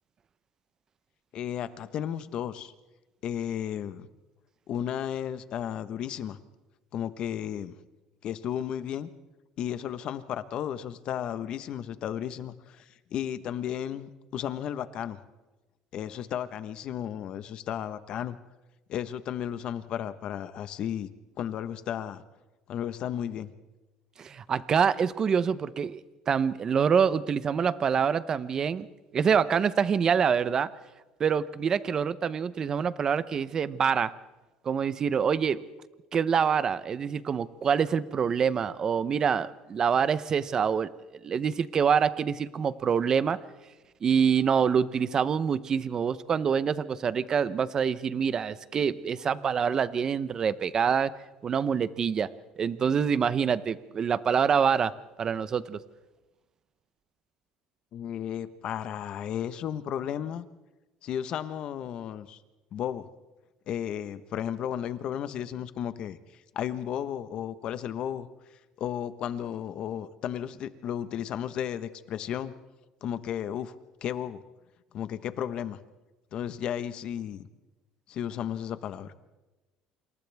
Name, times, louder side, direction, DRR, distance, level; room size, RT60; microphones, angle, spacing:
voice 1, 1.3-2.7 3.2-4.1 4.7-6.4 6.9-7.7 8.2-9.1 9.6-15.2 15.9-18.4 18.9-21.1 21.4-22.2 22.7-23.5 57.9-60.4 61.0-62.4 62.7-63.1 63.7-66.2 66.5-68.3 68.8-72.5 73.0-73.7 74.0-74.4 74.9-75.8 76.3-77.5 78.1-79.1, left 10 dB, 50° left, 12 dB, 1.2 m, -34 dB
voice 2, 24.2-28.9 29.1-30.7 31.2-34.1 34.6-35.6 36.1-40.9 41.2-43.4 44.0-51.1 51.4-52.3 52.6-54.9 55.2-55.8, right 7 dB, 30° right, 15 dB, 0.8 m, -26 dB
28.5 x 27.5 x 3.6 m, 1.1 s
cardioid pair, 135°, 2 cm